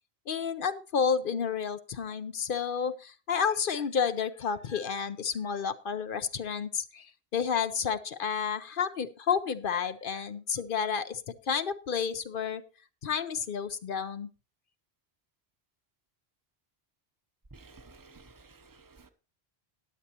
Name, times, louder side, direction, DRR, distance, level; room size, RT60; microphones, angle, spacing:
voice 1, 0.3-12.6 13.0-14.3, left 6 dB, 60° left, 0.8 m, -31 dB
voice 2, 17.5-19.1, right 3 dB, 20° right, 0.8 m, -54 dB
15.0 x 9.9 x 2.9 m
omnidirectional pair, 1.0 m